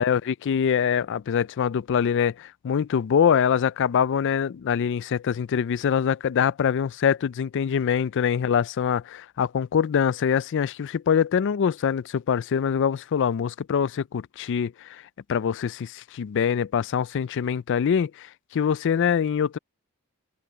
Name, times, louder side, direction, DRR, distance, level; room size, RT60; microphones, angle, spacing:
voice 1, 0.0-15.0 15.3-19.6, left 7 dB, 55° left, 0.3 m, -24 dB
head